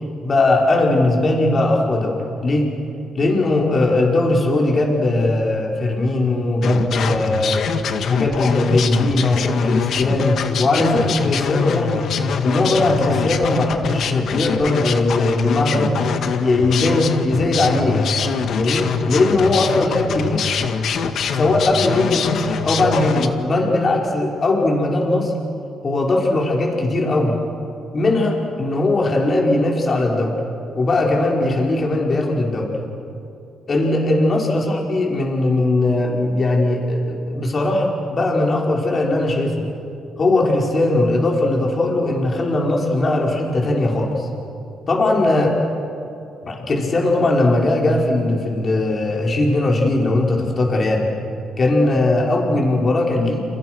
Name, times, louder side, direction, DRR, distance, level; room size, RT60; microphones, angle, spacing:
voice 1, 0.2-2.7 3.2-7.6 8.1-12.1 12.4-16.0 16.4-18.2 18.6-20.5 21.3-25.3 25.8-27.4 27.9-30.4 30.7-32.8 33.7-39.6 40.2-44.3 44.9-45.6 46.4-51.1 51.6-53.4, left 2 dB, 40° left, -1 dB, 5.5 m, -19 dB
sound 1, 6.6-23.3, left 6 dB, 70° left, 1.9 m, -24 dB
30.0 x 29.5 x 6.4 m, 2.6 s
cardioid pair, 90°, 0 cm